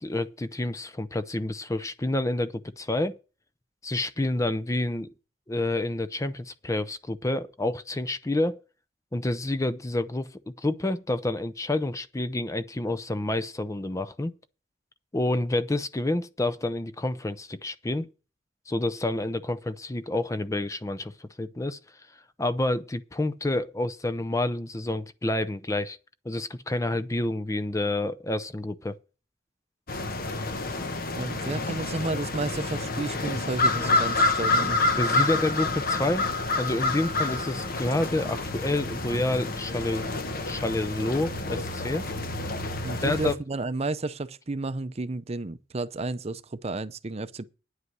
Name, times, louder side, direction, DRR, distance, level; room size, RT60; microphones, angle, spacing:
voice 1, 0.0-3.2 3.8-5.1 5.5-8.6 9.1-14.3 15.1-18.1 18.7-21.8 22.4-26.0 26.2-29.0 35.0-40.1 40.5-42.0 43.0-43.3, left 2 dB, 15° left, 0.5 m, -28 dB
sound 1, 29.9-43.3, left 2 dB, 50° left, 1.2 m, -28 dB
voice 2, 31.2-34.8 42.8-47.5, right 3 dB, 35° right, 0.6 m, -32 dB
9.8 x 8.1 x 6.1 m
head